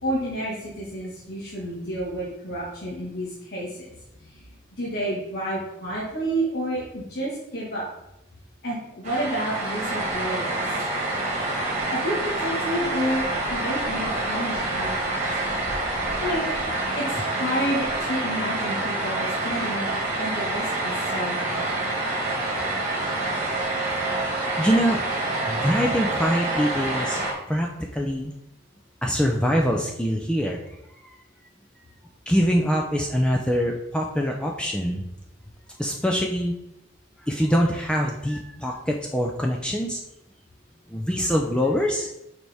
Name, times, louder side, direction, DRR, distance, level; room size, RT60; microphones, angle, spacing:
voice 1, 0.0-3.9 4.3-4.4 4.7-7.9 8.6-10.8 11.9-13.2 13.5-15.2 16.2-16.6 16.9-21.8, right 1 dB, 55° left, -6 dB, 1.5 m, -30 dB
sound 1, 9.0-27.3, right 2 dB, 35° right, 1.4 m, -27 dB
voice 2, 23.6-24.2 24.5-25.0 25.5-27.2 27.5-27.7 27.9-28.3 29.0-30.8 32.3-35.1 35.8-36.5 37.2-40.0 40.9-42.1, equal, 5° left, 0 dB, 0.4 m, -24 dB
6.5 x 4.6 x 3.5 m, 0.86 s
head